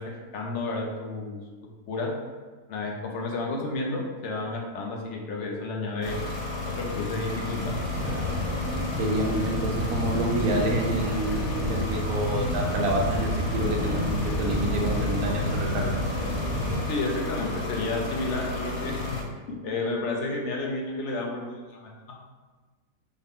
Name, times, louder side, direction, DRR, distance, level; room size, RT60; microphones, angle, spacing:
voice 1, 0.0-1.4 1.9-2.1 2.7-6.1 6.7-7.7 16.9-19.2 19.5-21.4 21.7-21.9, left 2 dB, 65° left, -1 dB, 0.7 m, -31 dB
sound 1, 6.0-19.2, left 2 dB, 90° left, 1.2 m, -33 dB
sound 2, 7.6-16.8, equal, 20° left, 1.0 m, -30 dB
voice 2, 9.0-16.0, right 1 dB, 70° right, 0 dB, 1.0 m, -28 dB
3.9 x 2.1 x 3.5 m, 1.4 s
omnidirectional pair, 1.7 m